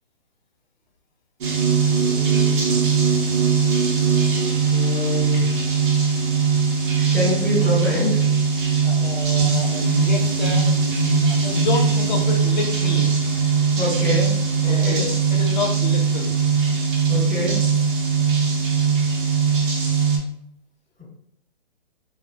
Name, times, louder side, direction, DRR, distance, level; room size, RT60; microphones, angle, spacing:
sound 1, 1.4-20.2, right 5 dB, 60° right, 0.7 m, -20 dB
voice 1, 1.9-2.8 4.7-5.5 7.1-8.3 13.8-14.3 14.6-15.1 17.1-17.6, left 2 dB, ahead, -18 dB, 0.4 m, -26 dB
voice 2, 8.8-10.7 11.3-13.1 14.7-15.0 15.3-16.3, left 3 dB, 50° left, 2 dB, 0.5 m, -28 dB
2.2 x 2.1 x 2.7 m, 0.71 s
hypercardioid pair, 145°, 29 cm